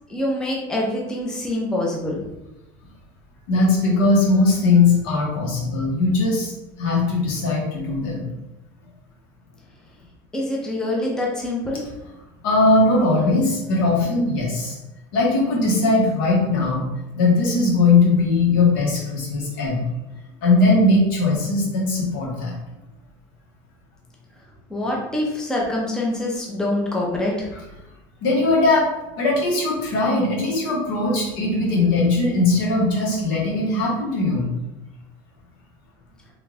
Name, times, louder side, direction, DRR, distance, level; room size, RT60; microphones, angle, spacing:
voice 1, 0.1-2.2 10.3-11.9 24.7-27.5, left 1 dB, 5° left, -3 dB, 0.6 m, -25 dB
voice 2, 3.5-6.5 6.8-8.3 12.4-14.8 15.1-16.9 17.1-19.9 20.4-22.5 28.2-34.5, left 3 dB, 75° left, -3 dB, 1.3 m, -19 dB
3.4 x 2.4 x 3.2 m, 0.96 s
supercardioid pair, 145°, 11 cm